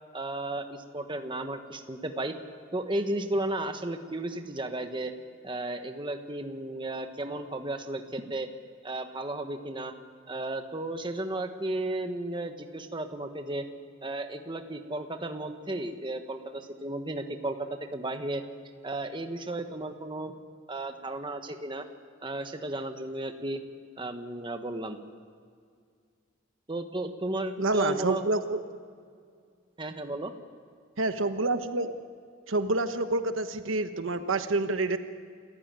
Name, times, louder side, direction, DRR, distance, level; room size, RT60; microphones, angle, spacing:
voice 1, 0.1-2.3 2.7-5.1 5.4-8.5 8.8-9.9 10.3-13.6 14.0-18.4 18.8-20.3 20.7-21.8 22.2-23.6 24.0-25.0 26.7-28.2 29.8-30.3, right 1 dB, 25° right, 7 dB, 1.3 m, -34 dB
voice 2, 27.6-28.6 31.0-31.9 32.5-35.0, right 2 dB, 80° right, 9 dB, 1.2 m, -27 dB
28.0 x 15.0 x 9.0 m, 2.2 s
head